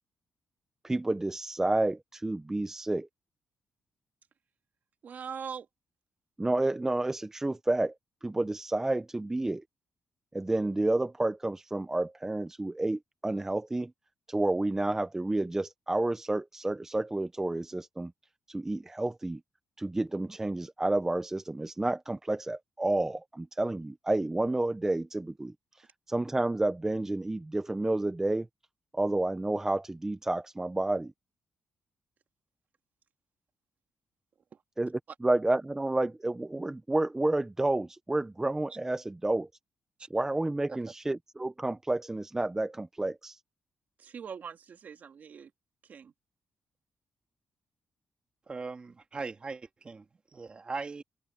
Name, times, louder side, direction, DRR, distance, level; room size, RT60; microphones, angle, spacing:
voice 1, 0.8-3.1 6.4-7.9 8.2-9.6 10.3-13.9 14.3-18.1 18.5-19.4 19.8-28.5 28.9-31.1 34.8-34.9 35.2-39.5 40.1-43.4, right 2 dB, 15° right, 0.6 m, -30 dB
voice 2, 5.0-5.7 34.5-34.6 44.0-45.5 45.8-46.1, right 7 dB, 55° right, 2.7 m, -42 dB
voice 3, 48.5-51.0, right 4 dB, 30° right, 2.0 m, -39 dB
cardioid pair, 120°, 4 cm